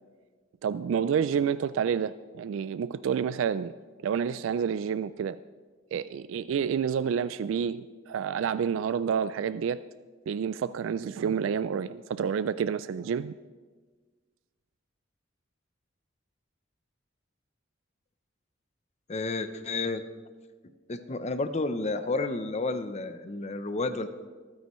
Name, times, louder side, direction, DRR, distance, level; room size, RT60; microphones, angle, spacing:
voice 1, 0.6-3.7 4.0-5.4 5.9-9.8 10.3-13.3, right 7 dB, 75° right, 15 dB, 0.3 m, -29 dB
voice 2, 19.1-20.1 20.9-24.1, left 3 dB, 35° left, 10 dB, 0.7 m, -31 dB
24.5 x 9.6 x 3.1 m, 1.4 s
head